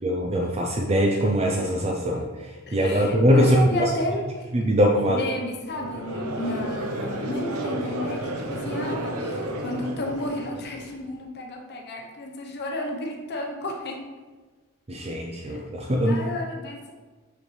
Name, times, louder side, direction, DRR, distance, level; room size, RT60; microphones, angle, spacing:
voice 1, 0.0-3.9 4.5-5.2 14.9-16.2, equal, 30° right, 0 dB, 0.5 m, -22 dB
voice 2, 2.7-4.5 5.2-14.0 15.5-15.6 16.1-16.9, left 1 dB, 50° left, 0 dB, 0.9 m, -32 dB
Conversation / Crowd, 5.7-11.0, right 1 dB, 70° right, 0.8 m, -32 dB
6.7 x 5.3 x 3.2 m, 1.3 s
head